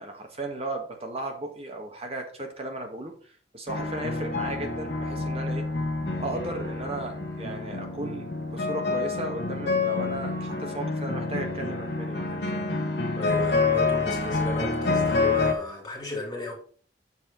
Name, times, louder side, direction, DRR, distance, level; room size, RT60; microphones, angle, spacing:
voice 1, 0.0-5.7 6.2-12.6, right 2 dB, 35° right, 3 dB, 1.6 m, -36 dB
sound 1, 3.7-15.5, left 3 dB, 70° left, 1.5 m, -28 dB
voice 2, 13.1-16.5, left 1 dB, 20° left, -3 dB, 3.7 m, -34 dB
7.2 x 4.9 x 4.7 m, 0.43 s
head